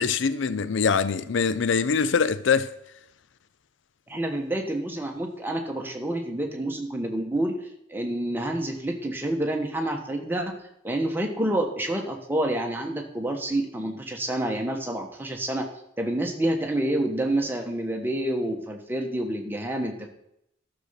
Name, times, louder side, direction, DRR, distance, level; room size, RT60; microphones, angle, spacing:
voice 1, 0.0-2.7, left 5 dB, 70° left, 0.5 m, -23 dB
voice 2, 4.1-7.6 7.9-10.5 10.8-15.7 16.0-20.1, right 1 dB, 10° right, 1.3 m, -28 dB
13.0 x 6.7 x 5.7 m
head